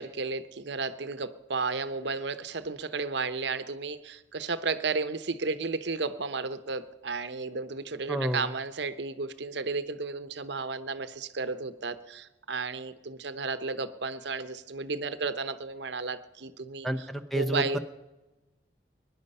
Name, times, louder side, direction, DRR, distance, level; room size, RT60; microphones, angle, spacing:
voice 1, 0.0-16.9 17.3-17.8, right 4 dB, 70° right, 12 dB, 0.9 m, -33 dB
voice 2, 8.1-8.5 16.8-17.8, right 1 dB, ahead, 8 dB, 0.6 m, -30 dB
22.5 x 11.0 x 5.5 m, 1.1 s
head